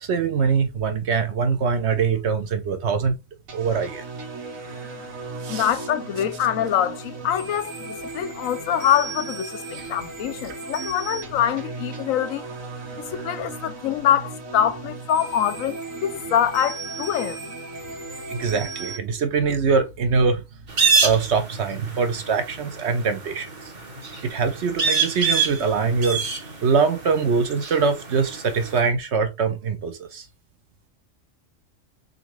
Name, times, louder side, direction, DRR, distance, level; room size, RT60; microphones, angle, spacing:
voice 1, 0.0-3.2 3.5-4.1 5.4-5.7 9.7-9.9 18.3-20.4 21.0-23.5 24.2-26.2 26.6-30.3, right 5 dB, 60° right, 1.0 m, -23 dB
sound 1, 3.5-19.0, right 4 dB, 80° right, 1.6 m, -36 dB
voice 2, 5.5-12.5 12.9-17.4, left 10 dB, 80° left, 1.0 m, -24 dB
sound 2, 20.7-28.8, right 5 dB, 40° right, 1.0 m, -26 dB
3.9 x 3.5 x 3.0 m
omnidirectional pair, 1.4 m